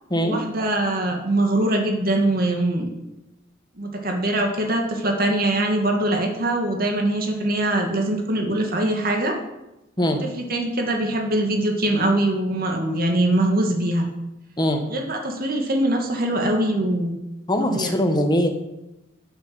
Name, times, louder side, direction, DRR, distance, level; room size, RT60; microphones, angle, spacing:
voice 1, 0.2-2.9 3.8-9.4 10.5-14.0 14.9-17.1 17.6-17.9, right 1 dB, 50° right, 2 dB, 2.1 m, -22 dB
voice 2, 17.5-18.5, equal, 20° left, 4 dB, 1.3 m, -21 dB
9.1 x 8.0 x 7.7 m, 0.96 s
head